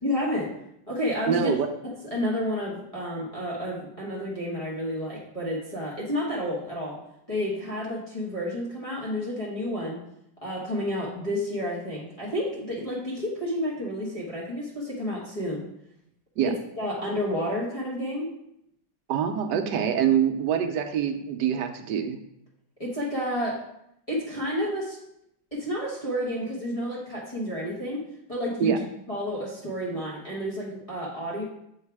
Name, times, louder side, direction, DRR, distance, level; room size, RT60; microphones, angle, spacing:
voice 1, 0.0-0.5 0.9-1.5 1.8-7.0 7.3-10.0 10.4-15.7 16.4-18.3 22.8-23.6 24.1-25.0 25.5-28.7 29.1-31.4, equal, 20° left, -7 dB, 1.4 m, -30 dB
voice 2, 1.3-1.7 16.4-16.5 19.1-22.2 28.6-28.8, right 8 dB, 75° right, 6 dB, 1.2 m, -25 dB
7.4 x 3.2 x 4.7 m, 0.77 s
omnidirectional pair, 2.0 m